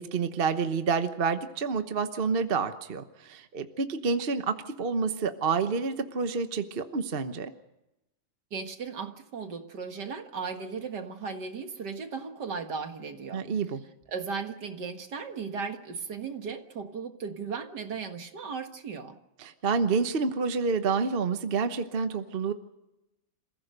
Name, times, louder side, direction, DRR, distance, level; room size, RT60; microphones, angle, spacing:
voice 1, 0.0-7.5 13.3-13.8 19.4-22.5, right 5 dB, 35° right, 9 dB, 1.0 m, -28 dB
voice 2, 8.5-13.4 14.1-19.2, right 5 dB, 60° right, 6 dB, 2.2 m, -36 dB
28.0 x 15.5 x 6.7 m, 0.94 s
omnidirectional pair, 2.1 m